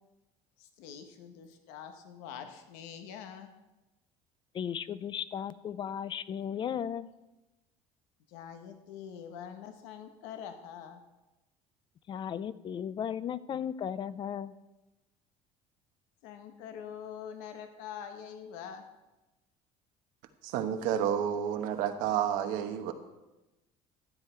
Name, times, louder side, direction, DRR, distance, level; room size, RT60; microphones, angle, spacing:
voice 1, 0.6-3.5 8.3-11.0 16.2-18.8, left 8 dB, 90° left, 7 dB, 1.1 m, -45 dB
voice 2, 4.5-7.1 12.1-14.5, left 8 dB, 35° left, 16 dB, 0.5 m, -35 dB
voice 3, 20.4-22.9, right 9 dB, 80° right, 6 dB, 1.1 m, -30 dB
13.0 x 8.3 x 4.4 m, 1.0 s
cardioid pair, 120°, 13 cm